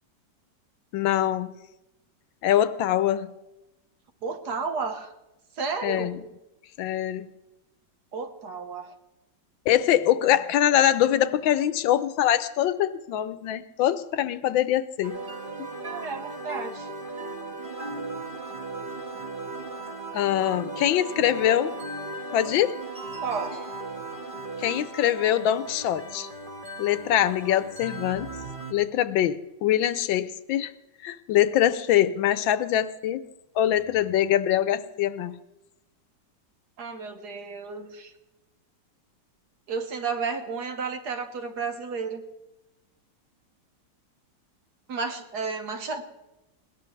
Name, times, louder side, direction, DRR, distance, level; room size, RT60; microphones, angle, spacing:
voice 1, 0.9-1.5 2.4-3.3 5.8-6.2 6.8-7.3 9.7-15.2 15.6-15.7 20.1-21.8 22.3-22.7 24.6-26.3 26.8-28.3 28.7-30.7 31.0-33.2 33.6-35.4, left 11 dB, 85° left, 14 dB, 1.5 m, -23 dB
voice 2, 4.2-5.1 5.6-6.1 8.1-8.9 15.8-16.9 23.2-23.7 36.8-38.1 39.7-42.2 44.9-46.0, right 5 dB, 60° right, 6 dB, 1.7 m, -32 dB
sound 1, 15.0-28.7, right 2 dB, 30° right, 1.7 m, -37 dB
21.0 x 17.5 x 3.2 m, 0.98 s
omnidirectional pair, 2.1 m